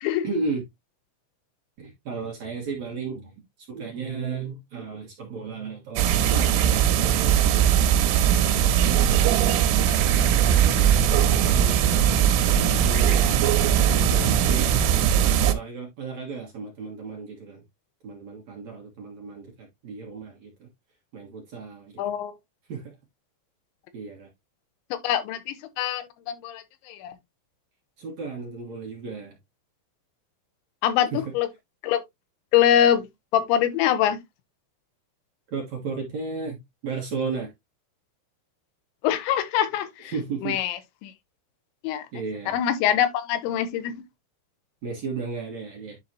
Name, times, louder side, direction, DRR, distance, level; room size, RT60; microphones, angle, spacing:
voice 1, 0.2-0.6 1.8-3.3 3.7-8.0 8.5-10.4 10.8-13.3 13.7-17.6 18.0-20.7 21.1-22.0 22.7-22.9 23.9-24.3 28.0-29.4 31.1-31.2 35.5-37.5 40.1-40.6 42.1-42.6 44.8-46.0, right 4 dB, 60° right, 2.0 m, -35 dB
sound 1, 6.0-15.5, right 10 dB, 85° right, 3.3 m, -20 dB
sound 2, 9.9-15.5, right 3 dB, 20° right, 1.5 m, -31 dB
voice 2, 22.0-22.3 24.9-27.1 30.8-31.5 31.8-32.0 32.5-33.1 33.3-34.2 39.0-40.1 40.4-41.1 41.8-42.1 42.5-44.0, left 10 dB, 80° left, 3.1 m, -24 dB
10.5 x 4.0 x 2.8 m
omnidirectional pair, 5.5 m